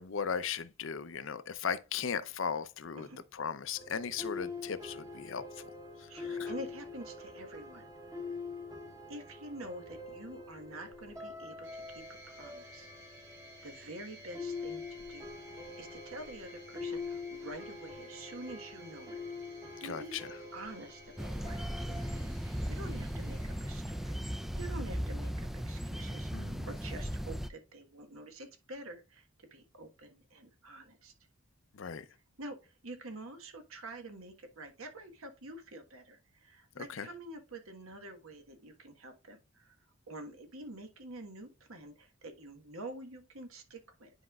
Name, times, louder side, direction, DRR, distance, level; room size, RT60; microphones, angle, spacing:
voice 1, 0.0-5.7 6.0-6.5 19.8-20.4 26.3-26.7 31.7-32.1 36.7-37.1, left 6 dB, 65° left, 0.6 m, -37 dB
sound 1, 3.8-22.2, left 4 dB, 15° right, 1.0 m, -44 dB
voice 2, 6.1-7.8 8.1-8.4 9.1-12.9 13.6-14.8 15.1-19.2 19.5-20.2 20.5-31.1 32.4-39.7 40.1-44.1, right 1 dB, 80° right, 1.4 m, -47 dB
sound 2, 11.6-24.5, equal, 60° right, 3.0 m, -56 dB
sound 3, 21.2-27.5, equal, ahead, 0.3 m, -37 dB
9.7 x 5.1 x 2.4 m
head